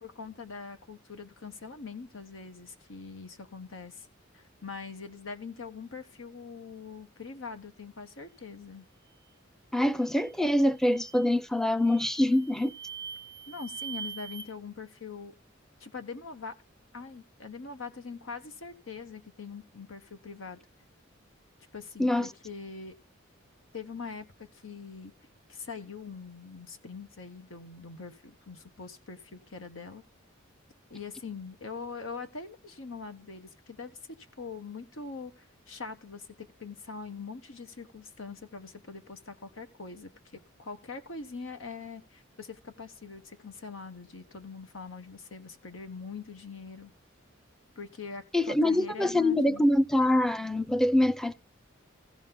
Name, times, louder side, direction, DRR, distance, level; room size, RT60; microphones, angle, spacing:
voice 1, 0.0-4.1 4.3-8.8 13.5-15.3 15.8-16.5 16.9-20.6 21.7-22.9 23.7-25.1 25.5-30.0 30.9-34.0 34.4-46.9 47.8-49.7, left 4 dB, 85° left, 1.2 m, -43 dB
voice 2, 9.7-12.7 22.0-22.3 48.3-51.3, left 1 dB, ahead, 0.5 m, -25 dB
sound 1, 10.0-10.3 10.8-11.3 11.8-14.5, right 7 dB, 40° left, 2.2 m, -43 dB
15.5 x 6.3 x 3.7 m
head